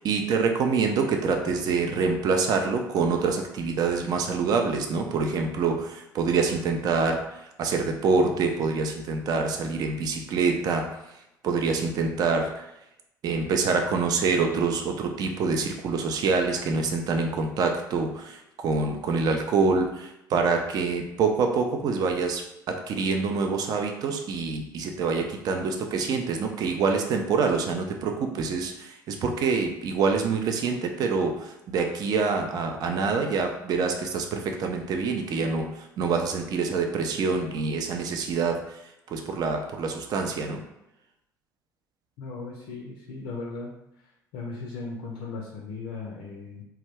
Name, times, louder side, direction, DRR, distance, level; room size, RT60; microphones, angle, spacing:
voice 1, 0.0-12.7 13.2-40.6, right 4 dB, 40° right, 4 dB, 0.4 m, -26 dB
voice 2, 42.2-43.7 44.3-46.6, left 3 dB, 60° left, -1 dB, 0.4 m, -37 dB
2.2 x 2.0 x 3.3 m, 0.86 s
figure-of-eight pair, 55°, 10 cm